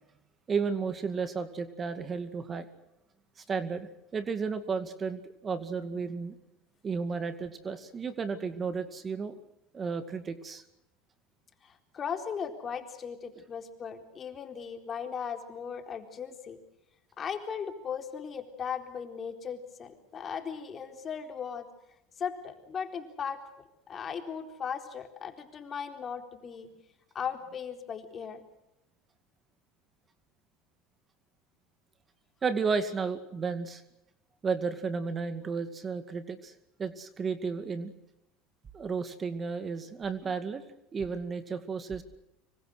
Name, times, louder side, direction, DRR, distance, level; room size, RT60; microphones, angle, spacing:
voice 1, 0.5-2.7 3.5-6.4 6.8-9.4 9.7-10.6 32.4-33.8 34.4-36.5 36.8-37.9 38.7-40.6 40.9-42.0, right 5 dB, 30° right, 11 dB, 2.2 m, -33 dB
voice 2, 11.6-16.6 17.2-21.7 22.2-23.4 23.9-26.7 27.1-28.4, left 7 dB, 35° left, 6 dB, 4.0 m, -37 dB
25.5 x 24.0 x 6.5 m, 0.86 s
supercardioid pair, 100°, 0 cm